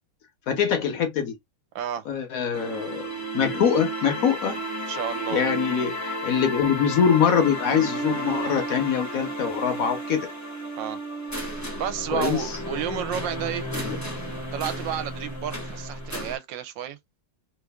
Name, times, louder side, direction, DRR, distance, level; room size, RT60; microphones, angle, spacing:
voice 1, 0.5-1.3 2.1-3.1 3.3-4.6 5.3-10.3 12.1-12.5 13.7-14.0, left 7 dB, 60° left, 1.0 m, -24 dB
voice 2, 1.7-2.1 4.9-5.5 10.8-11.0 11.8-13.7 14.5-17.0, right 10 dB, 75° right, 1.2 m, -31 dB
sound 1, 2.5-16.3, right 1 dB, 15° left, 0.6 m, -32 dB
3.2 x 2.5 x 3.4 m
omnidirectional pair, 2.2 m